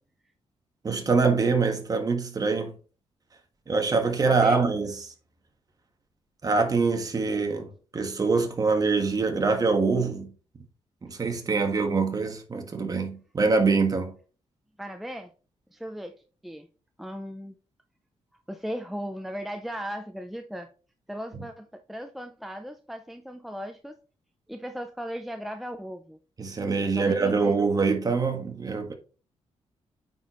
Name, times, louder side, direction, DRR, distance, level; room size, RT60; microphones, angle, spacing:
voice 1, 0.8-2.7 3.7-4.9 6.4-10.3 11.0-14.1 26.4-28.9, right 4 dB, 35° right, 1.5 m, -24 dB
voice 2, 4.2-4.6 14.8-15.3 15.7-16.7 17.0-17.5 18.5-20.7 21.1-23.9 24.5-26.2 27.0-27.6, equal, ahead, 0.5 m, -37 dB
9.2 x 4.4 x 3.1 m
cardioid pair, 110°, 11 cm